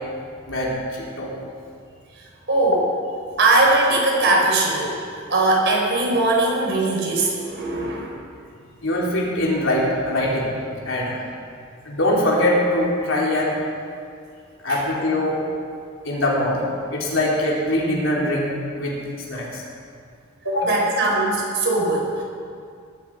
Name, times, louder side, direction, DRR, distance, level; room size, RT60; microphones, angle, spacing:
voice 1, 0.5-1.3 8.8-10.5 10.8-11.2 11.8-13.5 14.6-15.4 16.0-18.5 18.8-19.0 19.3-19.6 20.4-20.8, left 1 dB, 70° left, -4 dB, 4.1 m, -22 dB
voice 2, 2.5-2.8 3.4-8.1 14.7-14.8 20.4-22.2, right 2 dB, 60° right, -2 dB, 4.8 m, -20 dB
20.5 x 13.5 x 5.1 m, 2.3 s
head